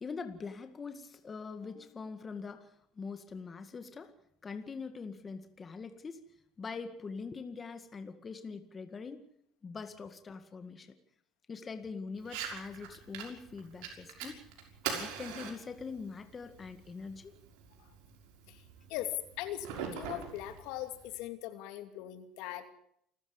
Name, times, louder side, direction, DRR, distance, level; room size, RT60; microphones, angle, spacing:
voice 1, 0.0-4.1 4.4-6.2 6.6-9.3 9.6-11.0 11.5-14.4 14.8-17.3, left 5 dB, 25° left, 8 dB, 2.0 m, -43 dB
Fire, 12.2-21.2, right 7 dB, 85° right, 6.1 m, -44 dB
voice 2, 18.5-22.7, left 12 dB, 75° left, 8 dB, 2.8 m, -40 dB
29.0 x 14.5 x 7.1 m, 0.71 s
cardioid pair, 130°, 0 cm